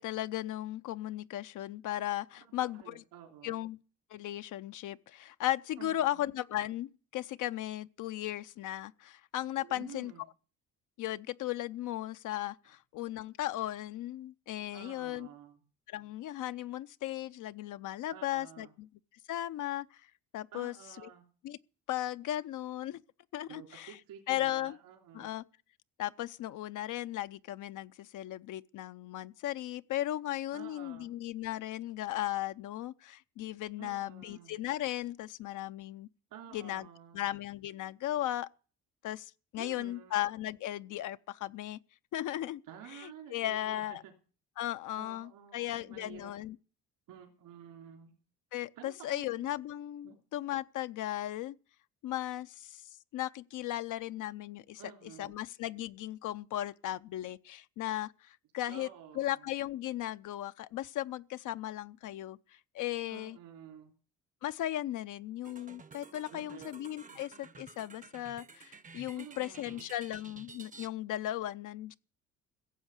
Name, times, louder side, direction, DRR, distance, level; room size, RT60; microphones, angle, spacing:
voice 1, 0.0-2.9 3.4-3.8 4.1-10.1 11.0-15.3 15.9-18.9 19.3-20.1 20.3-20.7 21.4-21.6 21.9-23.0 23.3-24.0 24.3-24.8 25.1-25.4 26.0-36.1 36.5-36.9 37.1-38.5 39.0-41.8 42.1-42.6 42.9-44.0 44.6-46.6 48.5-51.5 52.0-58.9 59.2-62.4 62.7-63.4 64.4-72.0, left 14 dB, 60° left, 0.6 m, -36 dB
voice 2, 2.7-3.6 5.8-6.2 9.6-10.2 14.7-15.6 18.1-18.7 20.5-21.3 23.5-25.3 30.5-31.1 33.8-34.5 36.3-37.2 39.6-40.2 42.7-44.1 44.9-46.3 47.1-48.1 48.8-49.5 50.0-50.2 54.8-55.3 58.7-59.5 63.1-63.9 66.3-66.7 67.1-67.2 69.1-69.9, right 9 dB, 70° right, 3.2 m, -51 dB
sound 1, 65.4-70.9, right 5 dB, 25° right, 0.8 m, -52 dB
16.0 x 7.2 x 8.1 m
supercardioid pair, 75°, 34 cm